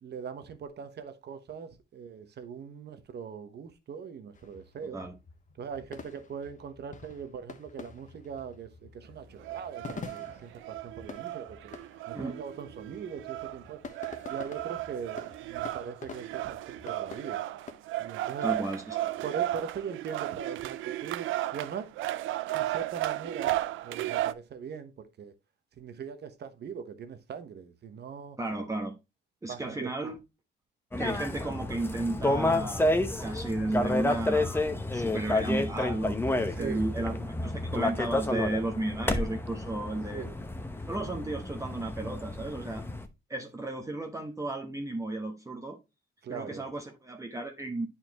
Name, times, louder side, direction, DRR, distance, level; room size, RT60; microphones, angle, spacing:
voice 1, 0.0-5.0 5.6-11.8 12.1-13.8 14.3-17.4 18.0-18.5 19.2-21.3 21.5-21.9 22.5-25.3 25.8-28.4 29.5-30.1 36.4-37.1 40.1-40.3 46.2-46.7, right 6 dB, 55° right, 1.1 m, -41 dB
sound 1, 4.3-17.7, left 5 dB, 40° left, 1.1 m, -48 dB
sound 2, 9.4-24.3, right 15 dB, 85° right, 0.5 m, -34 dB
voice 2, 18.4-19.2 28.4-29.0 29.4-30.2 31.0-32.9 33.2-40.3 40.9-42.9 43.3-45.8 46.3-47.9, right 2 dB, 15° right, 1.1 m, -34 dB
sound 3, 30.9-43.1, left 2 dB, 10° left, 0.9 m, -30 dB
9.4 x 4.3 x 2.9 m
cardioid pair, 90°, 20 cm